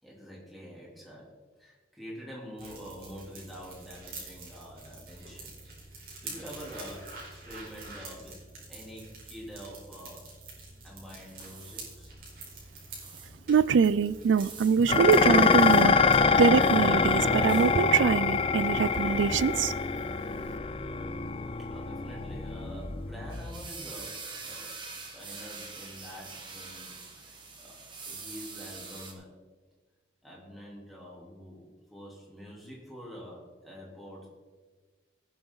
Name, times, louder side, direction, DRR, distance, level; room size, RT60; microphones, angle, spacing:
voice 1, 0.0-8.4 8.7-10.3 10.8-12.1 21.6-24.8 25.1-29.4 30.2-34.3, equal, ahead, -5 dB, 3.6 m, -46 dB
sound 1, 2.6-16.4, right 3 dB, 50° right, 4.6 m, -46 dB
sound 2, 10.9-29.1, right 4 dB, 25° right, 1.7 m, -47 dB
voice 2, 13.5-16.0 16.4-19.7, right 6 dB, 90° right, 18 dB, 0.4 m, -24 dB
Dishes pots and pans, 14.9-23.7, left 4 dB, 30° left, 0.4 m, -25 dB
19.0 x 7.6 x 4.0 m, 1.4 s
head